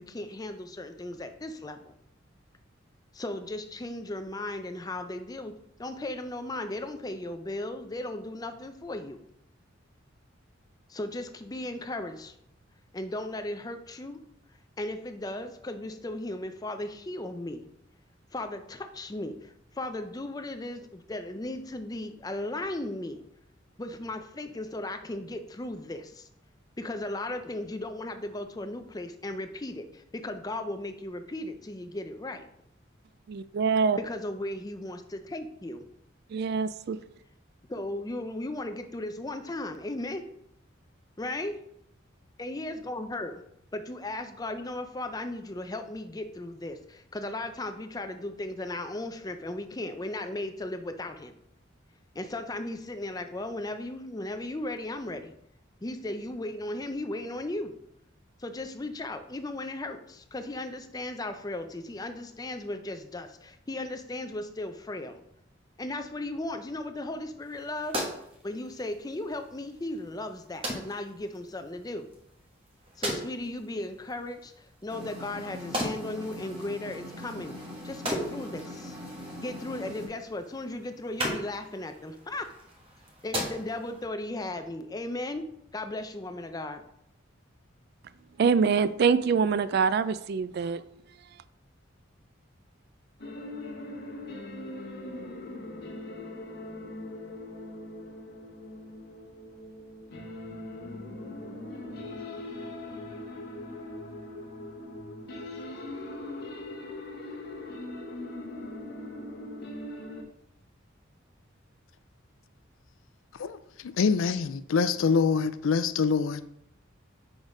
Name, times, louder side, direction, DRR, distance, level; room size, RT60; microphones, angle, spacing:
voice 1, 0.0-1.9 3.1-9.2 10.9-12.4 12.9-14.2 14.8-17.6 18.3-23.2 23.8-26.3 26.8-32.5 34.0-35.9 37.7-40.2 41.2-41.6 42.4-43.4 43.7-51.3 52.1-55.3 55.8-57.7 58.4-65.2 65.8-68.0 68.4-72.1 73.0-77.6 77.8-79.0 79.4-82.5 83.2-86.9, left 1 dB, 20° left, 0.5 m, -36 dB
voice 2, 33.3-34.0 36.3-37.0 88.4-90.8, right 5 dB, 50° right, 0.3 m, -25 dB
sound 1, 67.4-84.1, equal, 30° right, 1.2 m, -39 dB
sound 2, 74.9-80.1, left 1 dB, 5° right, 1.9 m, -42 dB
sound 3, 93.2-110.2, left 1 dB, 55° left, 1.3 m, -40 dB
voice 3, 114.0-116.5, left 5 dB, 80° left, 0.4 m, -25 dB
6.2 x 3.9 x 4.8 m
head